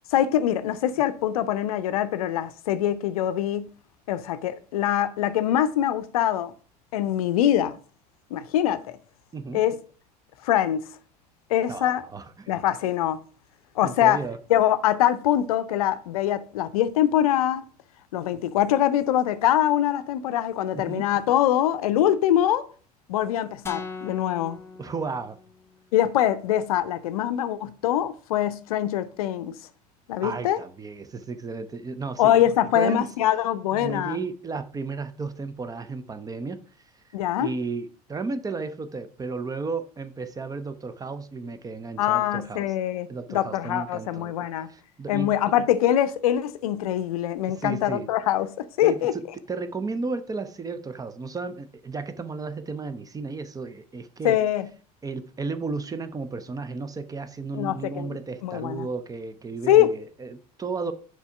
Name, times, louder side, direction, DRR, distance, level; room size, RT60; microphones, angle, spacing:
voice 1, 0.1-3.7 4.1-6.5 6.9-7.8 8.3-9.0 9.5-9.8 10.4-10.8 11.5-12.0 12.5-13.2 13.8-14.2 14.5-17.6 18.1-22.7 23.1-24.6 25.9-29.5 30.1-30.6 32.2-34.2 37.1-37.5 42.0-44.7 45.1-49.1 54.2-54.7 57.5-58.2 58.4-58.9 59.7-59.9, left 11 dB, 60° left, 0.6 m, -23 dB
voice 2, 9.3-9.6 11.7-12.5 13.8-14.4 20.7-21.1 24.8-25.4 30.2-32.4 32.7-33.1 33.7-36.6 37.4-42.7 43.1-45.3 47.5-48.1 48.8-54.4 55.0-60.9, right 4 dB, 15° right, 0.6 m, -33 dB
sound 1, 23.7-25.8, left 4 dB, 10° left, 1.1 m, -40 dB
6.9 x 4.6 x 5.8 m
figure-of-eight pair, 70°, 20 cm